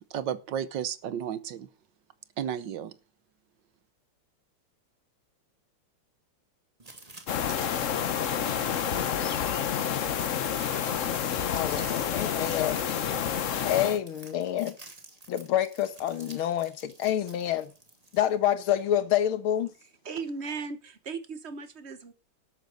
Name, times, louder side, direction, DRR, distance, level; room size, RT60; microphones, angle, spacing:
voice 1, 0.1-1.7 2.4-2.9, right 9 dB, 65° right, 1.4 m, -33 dB
sound 1, 6.8-18.5, right 2 dB, 20° right, 1.9 m, -49 dB
sound 2, 7.3-14.0, left 8 dB, 55° left, 0.8 m, -29 dB
voice 2, 11.5-12.8 13.6-14.8 15.3-17.7 18.1-19.7, left 11 dB, 80° left, 1.9 m, -27 dB
voice 3, 19.8-22.1, right 4 dB, 40° right, 1.1 m, -37 dB
12.0 x 9.0 x 5.3 m
omnidirectional pair, 2.3 m